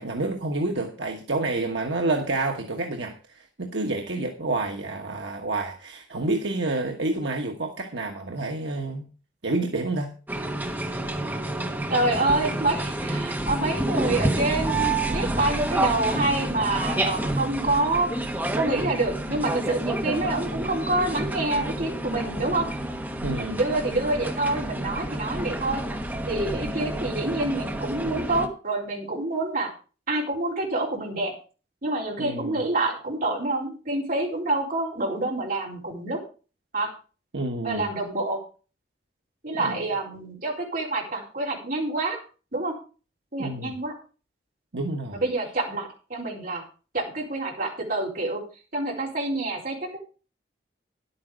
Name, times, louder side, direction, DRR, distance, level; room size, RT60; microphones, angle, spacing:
voice 1, 0.0-9.1 9.4-10.1 23.2-23.6 32.2-32.6 37.3-37.9 39.6-39.8 43.4-43.8 44.7-45.2, right 2 dB, 80° right, 1.3 m, -29 dB
sound 1, 10.3-28.5, right 1 dB, 10° right, 1.1 m, -29 dB
voice 2, 11.9-18.1 18.6-22.7 23.4-25.8 26.3-29.7 30.1-31.3 31.8-36.2 36.7-36.9 37.6-38.4 39.4-42.2 42.5-42.7 43.3-43.9 45.1-46.6 46.9-48.4 48.7-50.0, right 2 dB, 50° right, 4.1 m, -27 dB
11.0 x 8.6 x 5.0 m
head